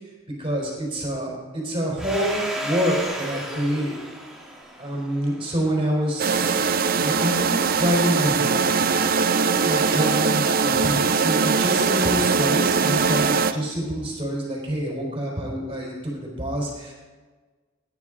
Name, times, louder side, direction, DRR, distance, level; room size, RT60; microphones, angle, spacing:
voice 1, 0.4-4.0 4.8-6.6 7.0-8.7 9.6-16.9, equal, 25° right, -2 dB, 3.9 m, -27 dB
Domestic sounds home sounds, 2.0-6.4, equal, ahead, 1.6 m, -33 dB
sound 1, 6.2-13.5, right 5 dB, 45° right, 0.5 m, -21 dB
16.5 x 9.9 x 3.8 m, 1.4 s
head